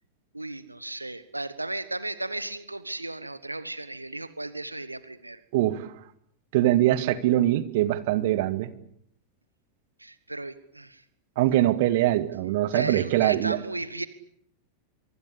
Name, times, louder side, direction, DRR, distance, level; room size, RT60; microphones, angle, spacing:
voice 1, 0.3-5.4 10.0-11.0 12.7-14.1, right 2 dB, 85° right, 15 dB, 1.3 m, -35 dB
voice 2, 5.5-5.9 6.5-8.7 11.4-13.6, right 14 dB, 50° right, 14 dB, 1.8 m, -23 dB
24.5 x 24.0 x 8.6 m, 0.70 s
figure-of-eight pair, 90°, 0 cm